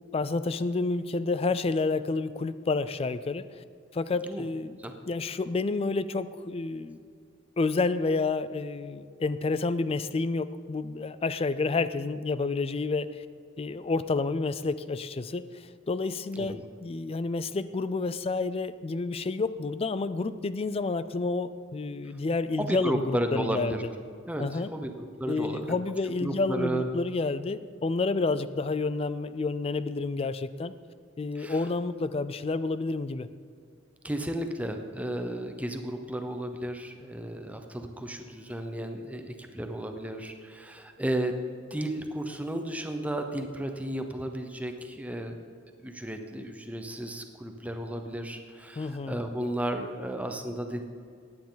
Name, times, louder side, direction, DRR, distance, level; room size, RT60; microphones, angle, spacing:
voice 1, 0.1-3.6 3.9-4.8 5.0-7.0 7.6-13.2 13.6-23.8 24.4-24.7 25.3-30.7 31.2-33.3 48.8-49.2, left 3 dB, 30° left, 14 dB, 0.4 m, -29 dB
voice 2, 16.3-16.6 22.6-23.8 24.3-25.8 26.2-26.9 31.3-31.6 34.0-45.4 45.8-50.8, right 1 dB, 5° right, 5 dB, 0.8 m, -33 dB
15.5 x 9.6 x 3.9 m, 2.3 s
head